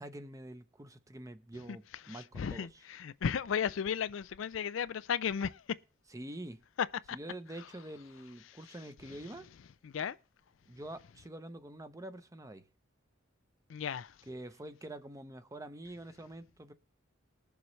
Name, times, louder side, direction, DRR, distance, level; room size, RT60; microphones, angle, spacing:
voice 1, 0.0-2.7 6.1-6.6 7.1-9.5 10.7-12.6 14.3-16.7, right 1 dB, 15° right, 0.8 m, -46 dB
voice 2, 1.5-5.8 6.8-7.2 7.5-7.7 8.4-9.4 9.8-10.2 10.7-10.8 13.7-14.3, left 7 dB, 70° left, 0.4 m, -36 dB
20.5 x 6.9 x 3.2 m
head